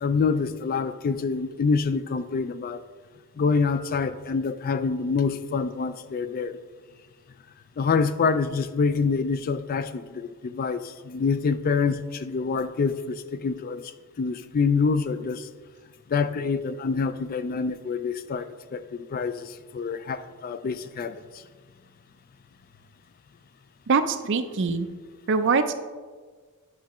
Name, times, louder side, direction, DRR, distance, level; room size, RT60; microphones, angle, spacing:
voice 1, 0.0-2.8 3.4-6.6 7.8-13.9 14.2-15.5 16.1-21.4, left 5 dB, 40° left, 12 dB, 0.3 m, -26 dB
voice 2, 23.9-24.9 25.3-25.7, right 4 dB, 55° right, 9 dB, 0.5 m, -23 dB
10.5 x 5.6 x 3.0 m, 1.5 s
head